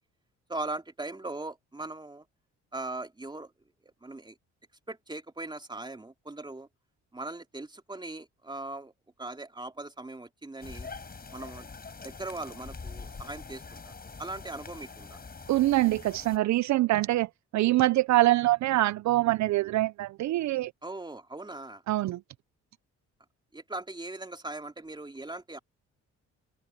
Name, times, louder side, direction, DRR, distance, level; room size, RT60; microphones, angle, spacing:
voice 1, 0.5-2.2 2.7-3.5 4.0-4.4 4.9-6.7 7.1-8.9 9.2-10.9 11.3-11.7 12.0-13.9 14.2-15.2 20.8-21.8 23.5-25.6, right 2 dB, 15° right, 3.2 m, -39 dB
sound 1, 10.6-16.4, left 4 dB, 30° left, 6.5 m, -44 dB
voice 2, 15.5-17.3 17.5-20.7 21.9-22.2, right 16 dB, 65° right, 0.5 m, -24 dB
open air
cardioid pair, 90°, 30 cm